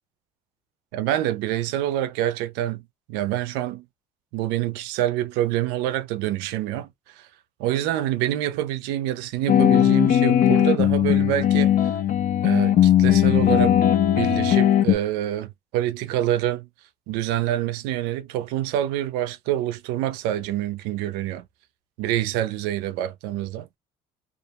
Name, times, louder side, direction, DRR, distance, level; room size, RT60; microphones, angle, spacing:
voice 1, 0.9-3.8 4.3-6.9 7.2-7.3 7.6-11.8 12.4-13.8 14.2-16.7 17.1-21.4 22.0-23.8, right 13 dB, 90° right, 0.4 m, -26 dB
sound 1, 9.5-14.9, left 10 dB, 55° left, 0.5 m, -18 dB
2.4 x 2.0 x 2.8 m
supercardioid pair, 90°, 16 cm